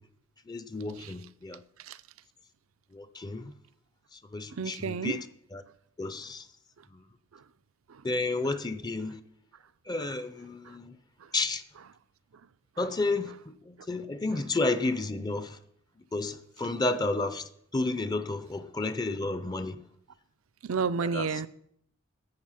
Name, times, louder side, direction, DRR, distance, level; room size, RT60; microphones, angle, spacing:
voice 1, 0.5-1.6 3.0-3.4 4.3-5.2 5.5-5.6 6.0-6.4 8.0-9.2 9.9-10.9 11.3-11.6 12.8-13.3 13.9-15.5 16.1-17.4 17.7-19.8 21.1-21.3, left 2 dB, 20° left, 0.5 m, -31 dB
voice 2, 4.6-5.2 12.8-12.9 20.6-21.5, right 5 dB, 75° right, 0.5 m, -30 dB
11.0 x 7.6 x 5.7 m
head